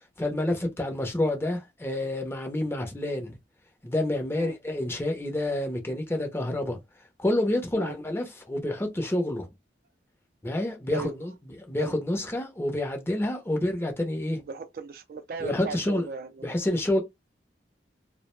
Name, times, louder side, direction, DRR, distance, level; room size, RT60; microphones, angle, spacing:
voice 1, 0.2-3.4 3.8-6.8 7.2-9.5 10.4-11.3 11.7-14.4 15.4-16.1 16.4-17.0, left 1 dB, 15° left, 0.6 m, -28 dB
voice 2, 14.5-16.6 16.9-17.0, right 4 dB, 55° right, 0.4 m, -37 dB
2.4 x 2.0 x 3.0 m
head